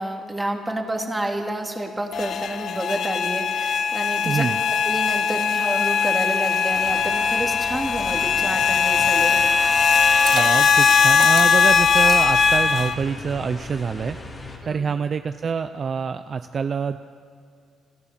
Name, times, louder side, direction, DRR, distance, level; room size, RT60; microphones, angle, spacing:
voice 1, 0.0-4.5 4.9-9.4 14.6-14.9, right 1 dB, 15° right, 2 dB, 2.7 m, -29 dB
sound 1, 2.1-12.9, left 6 dB, 65° left, 1.0 m, -20 dB
voice 2, 4.2-4.6 10.3-14.2 14.7-17.0, right 6 dB, 45° right, 10 dB, 0.6 m, -26 dB
sound 2, 6.7-14.6, left 2 dB, 30° left, 3.7 m, -38 dB
Liquid, 9.9-13.0, right 6 dB, 65° right, 1.3 m, -33 dB
28.0 x 12.5 x 7.5 m, 2.3 s
cardioid pair, 90°, 0 cm